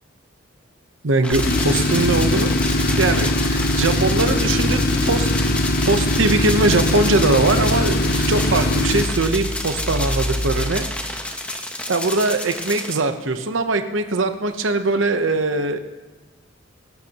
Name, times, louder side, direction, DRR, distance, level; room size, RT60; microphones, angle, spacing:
voice 1, 1.0-2.6 3.0-5.3 5.8-10.9 11.9-15.8, right 2 dB, 75° right, 8 dB, 0.8 m, -21 dB
sound 1, 1.2-13.0, left 1 dB, 5° left, 1.0 m, -30 dB
Tools, 1.3-10.8, left 1 dB, 50° left, 0.9 m, -21 dB
19.0 x 12.0 x 2.9 m, 1.3 s
head